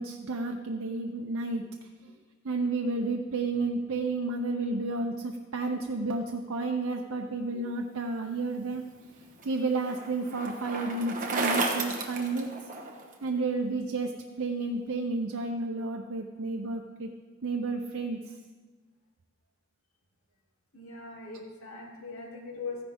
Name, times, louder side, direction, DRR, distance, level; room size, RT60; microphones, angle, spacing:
voice 1, 0.0-1.6 2.0-2.1 2.4-8.8 9.4-12.5 13.2-17.1 17.4-18.2, right 3 dB, 80° right, 3 dB, 0.7 m, -31 dB
Bicycle, 8.7-13.1, right 3 dB, 40° right, 1.3 m, -33 dB
voice 2, 20.7-22.8, left 4 dB, 80° left, -2 dB, 2.7 m, -40 dB
14.5 x 10.5 x 3.6 m, 1.4 s
head